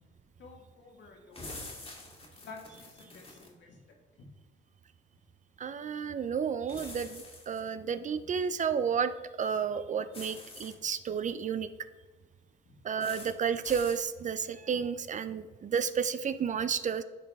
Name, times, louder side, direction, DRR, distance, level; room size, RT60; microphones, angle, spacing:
voice 1, 0.4-1.6 2.4-3.8 4.2-4.3 12.6-12.8, left 4 dB, 65° left, 1 dB, 1.7 m, -51 dB
sound 1, 1.3-3.5 6.7-7.6 10.1-10.7 13.0-13.3 13.6-14.0, left 2 dB, 30° left, 1.8 m, -46 dB
voice 2, 5.6-9.1 9.4-11.7 12.8-17.0, right 7 dB, 40° right, 13 dB, 0.4 m, -31 dB
10.5 x 3.9 x 3.5 m, 1.3 s
cardioid pair, 90°, 20 cm